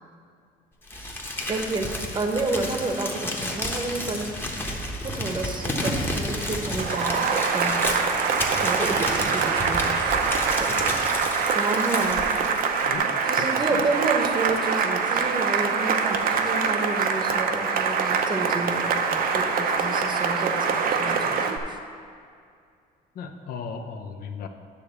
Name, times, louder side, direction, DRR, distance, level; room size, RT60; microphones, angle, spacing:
Crumpling crinkling, 0.9-13.0, left 1 dB, 15° left, 1.0 m, -31 dB
voice 1, 1.5-4.3 5.0-7.9 8.6-10.2 10.6-10.7 11.5-12.3 13.3-21.8, right 3 dB, 25° right, 4 dB, 0.9 m, -30 dB
Cheering / Applause, 6.8-21.6, right 5 dB, 55° right, 0.7 m, -24 dB
voice 2, 12.9-13.9 23.1-24.5, left 5 dB, 60° left, 6 dB, 0.8 m, -37 dB
9.9 x 3.6 x 6.9 m, 2.3 s
cardioid pair, 110°, 17 cm